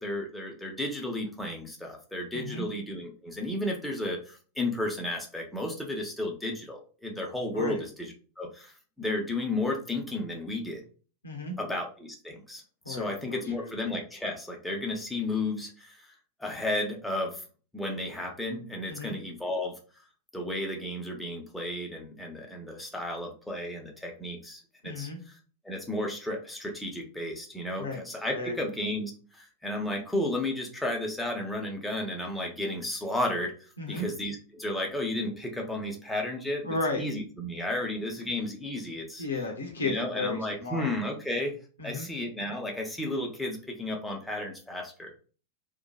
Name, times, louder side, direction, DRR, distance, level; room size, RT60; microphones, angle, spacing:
voice 1, 0.0-10.8 11.6-16.1 16.4-17.4 17.7-19.7 20.3-25.1 25.6-33.5 33.9-39.2 39.8-41.6 41.8-45.1, left 1 dB, 5° left, 0 dB, 0.6 m, -33 dB
voice 2, 2.3-2.6 7.5-7.8 11.2-11.5 12.8-13.7 18.9-19.2 24.8-25.2 27.8-28.0 28.3-28.6 33.8-34.1 36.6-37.0 39.2-40.9 41.8-42.1, left 3 dB, 70° left, 2 dB, 0.8 m, -33 dB
2.8 x 2.2 x 2.3 m, 0.37 s
figure-of-eight pair, 90°, 0 cm